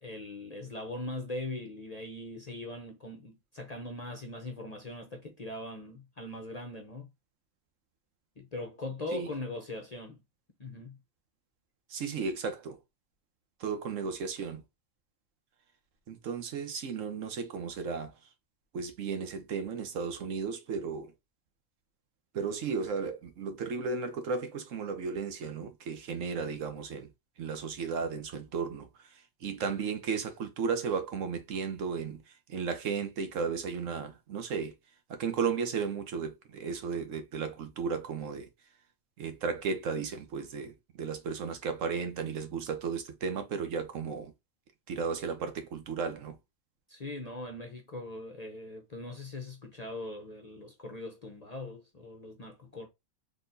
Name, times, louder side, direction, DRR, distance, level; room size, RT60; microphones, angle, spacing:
voice 1, 0.0-7.1 8.4-10.2 10.6-11.0 46.9-52.9, left 2 dB, 40° left, 0.6 m, -41 dB
voice 2, 11.9-12.8 13.6-14.6 16.1-18.1 18.7-21.1 22.3-27.1 27.4-28.9 29.4-32.2 32.5-34.7 35.1-38.5 39.2-44.3 44.9-46.4, right 5 dB, 70° right, 1.1 m, -34 dB
4.0 x 3.3 x 2.6 m
omnidirectional pair, 1.4 m